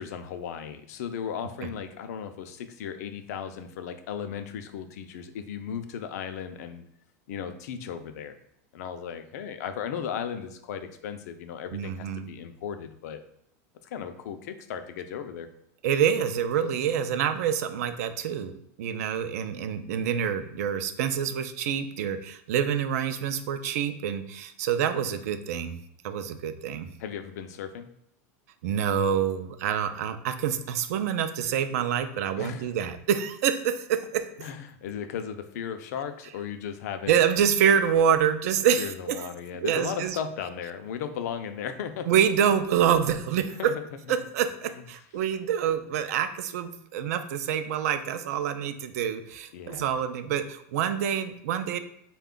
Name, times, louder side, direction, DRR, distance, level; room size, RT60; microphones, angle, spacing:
voice 1, 0.0-6.8 7.3-8.4 8.7-13.2 13.8-15.5 27.0-27.9 32.4-32.7 34.4-37.2 38.8-42.1 43.6-43.8 44.1-44.2 49.5-50.0, left 7 dB, 75° left, 9 dB, 0.4 m, -36 dB
voice 2, 11.7-12.3 15.8-25.8 26.0-26.9 28.6-34.2 37.1-39.3 39.6-40.2 42.1-43.7 44.1-51.8, right 8 dB, 65° right, 10 dB, 0.4 m, -26 dB
4.2 x 2.3 x 3.7 m, 0.75 s
supercardioid pair, 175°, 9 cm